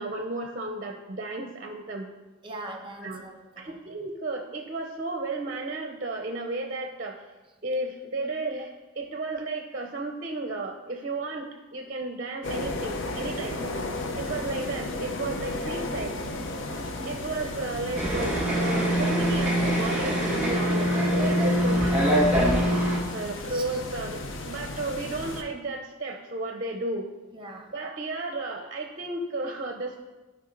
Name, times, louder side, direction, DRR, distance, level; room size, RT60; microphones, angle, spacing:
voice 1, 0.0-2.1 3.0-3.3 3.6-7.2 7.6-13.6 14.2-16.2 17.0-22.5 23.1-27.1 27.7-30.0, right 2 dB, 40° right, 4 dB, 0.6 m, -33 dB
voice 2, 2.4-3.7 13.3-13.6 16.5-16.9 23.2-23.6 27.3-27.7, right 2 dB, 25° right, 3 dB, 1.0 m, -42 dB
sound 1, 12.4-25.4, left 2 dB, 65° left, 0.7 m, -34 dB
sound 2, 18.0-23.0, equal, 10° right, 1.9 m, -23 dB
11.5 x 4.7 x 3.9 m, 1.2 s
head